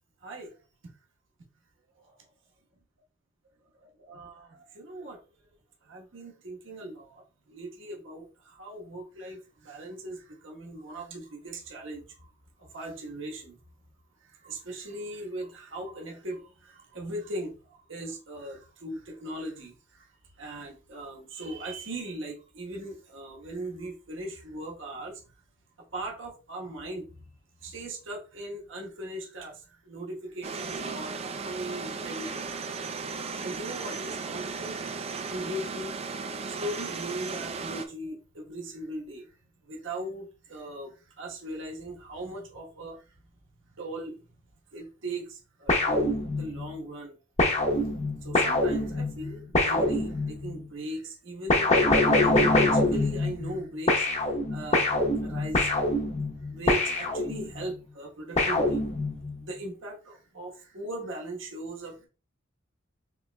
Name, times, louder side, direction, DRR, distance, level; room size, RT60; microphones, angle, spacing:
voice 1, 0.2-0.5 2.0-2.1 3.8-5.2 5.9-7.2 7.5-12.0 12.6-13.6 14.3-20.1 20.4-25.2 25.9-27.1 27.6-32.5 32.8-35.0 35.3-36.0 36.5-39.3 39.7-43.0 43.8-44.2 44.7-47.2 48.2-51.7 52.0-54.8 55.2-55.7 56.5-58.8 59.4-62.1, right 1 dB, 65° right, -1 dB, 1.2 m, -39 dB
sound 1, 30.4-37.9, right 4 dB, 30° right, 0.4 m, -36 dB
sound 2, 45.7-46.7 47.4-50.5 51.5-53.6 53.9-57.6 58.4-59.4, left 2 dB, 35° left, 0.9 m, -25 dB
5.8 x 3.1 x 2.2 m, 0.34 s
head